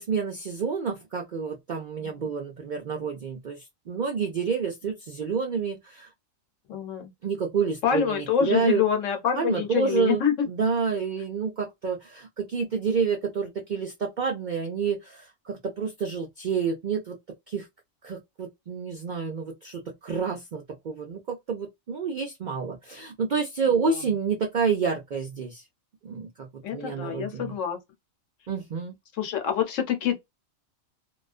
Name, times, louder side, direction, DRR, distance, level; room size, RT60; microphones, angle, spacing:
voice 1, 0.0-6.1 7.2-8.8 9.4-17.2 17.5-17.7 18.0-25.6 26.0-27.5 28.5-28.9, right 5 dB, 65° right, 0.4 m, -29 dB
voice 2, 6.7-7.1 7.8-10.3 23.8-24.0 26.6-27.8 29.2-30.2, left 8 dB, 70° left, 1.0 m, -26 dB
2.3 x 2.2 x 2.4 m
omnidirectional pair, 1.4 m